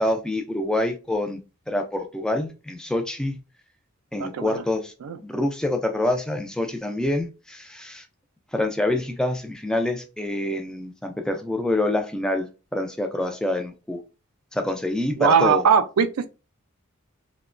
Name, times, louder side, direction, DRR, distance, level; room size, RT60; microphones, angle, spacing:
voice 1, 0.0-1.4 1.7-3.4 4.1-4.9 5.2-8.0 8.5-14.0 14.5-15.6, left 1 dB, 5° left, 0.3 m, -26 dB
voice 2, 4.2-4.6 5.0-5.2 15.2-16.3, right 6 dB, 75° right, 0.4 m, -20 dB
2.9 x 2.1 x 2.4 m
head